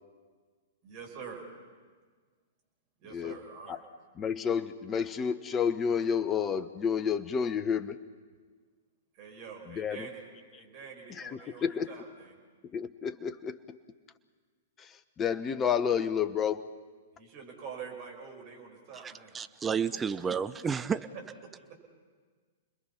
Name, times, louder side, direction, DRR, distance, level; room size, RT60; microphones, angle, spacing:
voice 1, 0.8-1.4 3.0-3.8 9.1-12.3 17.1-19.4 19.9-20.2 20.9-21.8, right 6 dB, 40° right, 1 dB, 5.9 m, -46 dB
voice 2, 3.1-3.4 3.7-3.8 4.2-8.0 9.7-10.1 11.1-11.9 12.7-13.8 14.8-16.7, left 7 dB, 20° left, 13 dB, 1.0 m, -30 dB
voice 3, 19.0-21.0, right 6 dB, 15° right, 12 dB, 0.7 m, -31 dB
30.0 x 21.5 x 5.8 m, 1.5 s
figure-of-eight pair, 105°, 0 cm